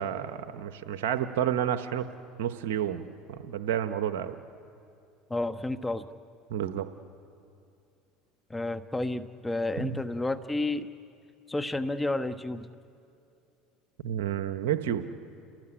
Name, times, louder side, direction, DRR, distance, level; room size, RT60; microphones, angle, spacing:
voice 1, 0.0-2.1 2.4-4.3 6.5-6.9 9.8-10.0 14.0-15.1, right 10 dB, 80° right, 9 dB, 1.0 m, -30 dB
voice 2, 5.3-6.0 8.5-10.9 11.5-12.7, left 2 dB, 10° left, 10 dB, 1.1 m, -31 dB
29.5 x 18.5 x 10.0 m, 2.6 s
supercardioid pair, 95°, 0 cm